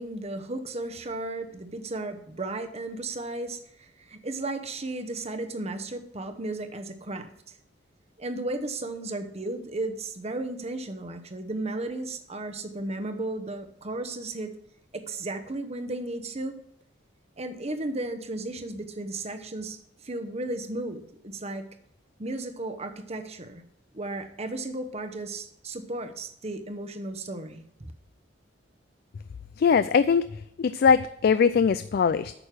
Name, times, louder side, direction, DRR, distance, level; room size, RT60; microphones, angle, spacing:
voice 1, 0.0-7.6 8.2-14.5 14.9-16.5 17.4-21.6 22.2-23.6 23.9-27.9, right 2 dB, 35° right, 7 dB, 0.9 m, -34 dB
voice 2, 29.6-30.3 30.6-32.3, left 6 dB, 55° left, 13 dB, 0.3 m, -21 dB
9.0 x 6.5 x 6.0 m, 0.74 s
head